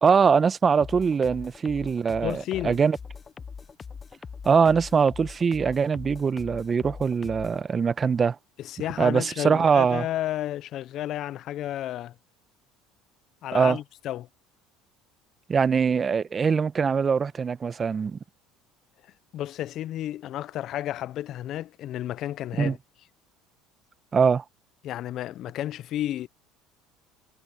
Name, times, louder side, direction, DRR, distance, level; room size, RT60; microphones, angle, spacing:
voice 1, 0.0-3.0 4.4-8.4 9.0-10.0 13.5-13.8 15.5-18.2 22.6-22.7 24.1-24.4, right 6 dB, 30° right, 1.3 m, -22 dB
sound 1, 0.8-7.6, left 5 dB, 30° left, 1.3 m, -42 dB
voice 2, 2.2-2.8 8.6-12.1 13.4-14.3 19.3-22.8 24.8-26.3, left 13 dB, 55° left, 0.8 m, -32 dB
hypercardioid pair, 75°, 0 cm